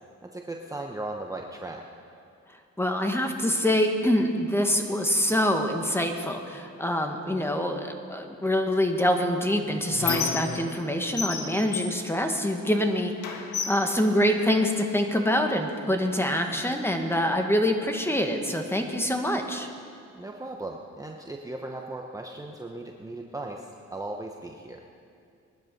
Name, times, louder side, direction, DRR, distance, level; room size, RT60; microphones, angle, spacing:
voice 1, 0.2-1.8 20.1-24.8, right 2 dB, 10° right, 1 dB, 1.1 m, -37 dB
voice 2, 2.5-19.7, left 1 dB, 10° left, 4 dB, 1.6 m, -25 dB
Squeak, 9.1-10.9 11.2-12.8 13.2-14.9 15.7-15.8 16.2-17.2, left 5 dB, 75° left, 1.7 m, -34 dB
20.5 x 12.0 x 5.4 m, 2.4 s
cardioid pair, 90°, 30 cm